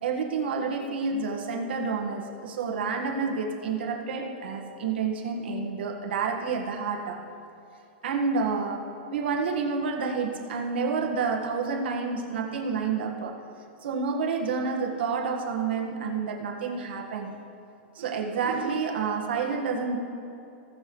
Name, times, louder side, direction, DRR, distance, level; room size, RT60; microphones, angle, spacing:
voice 1, 0.0-7.2 8.0-13.4 13.8-17.3 17.9-20.0, right 5 dB, 75° right, 2 dB, 1.6 m, -29 dB
18.5 x 7.0 x 3.2 m, 2.8 s
supercardioid pair, 170°, 6 cm